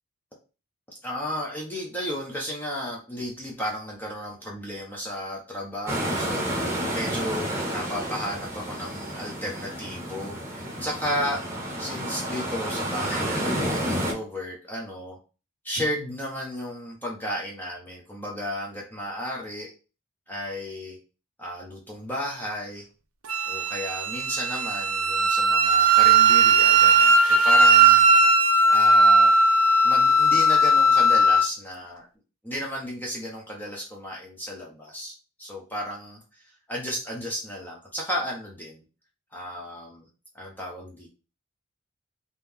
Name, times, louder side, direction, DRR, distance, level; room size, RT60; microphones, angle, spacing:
voice 1, 1.0-11.4 11.8-15.2 15.6-19.7 20.3-21.0 21.4-22.9 23.5-28.3 28.7-29.4 29.8-32.0 32.4-36.4 36.7-38.8 39.3-40.1 40.3-41.1, equal, 10° left, -3 dB, 0.8 m, -33 dB
sound 1, 5.9-14.1, equal, 10° right, 1.1 m, -30 dB
Wind instrument woodwind instrument, 23.3-31.5, right 2 dB, 90° right, 0.7 m, -18 dB
3.7 x 2.9 x 3.5 m, 0.33 s
head